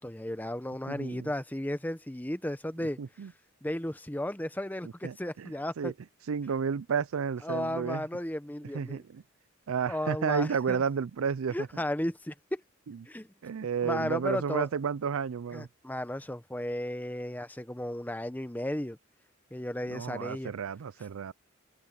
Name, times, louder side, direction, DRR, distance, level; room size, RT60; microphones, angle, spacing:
voice 1, 0.0-3.0 3.6-5.9 7.4-9.0 9.9-10.8 11.5-12.6 13.1-13.3 13.8-14.7 15.5-19.0 19.5-20.5, left 1 dB, 10° left, 0.8 m, -34 dB
voice 2, 0.9-1.3 3.0-3.3 5.0-5.5 5.8-5.9 6.3-8.0 8.7-9.2 9.7-11.7 13.4-15.7 19.9-21.3, right 6 dB, 90° right, 0.4 m, -31 dB
head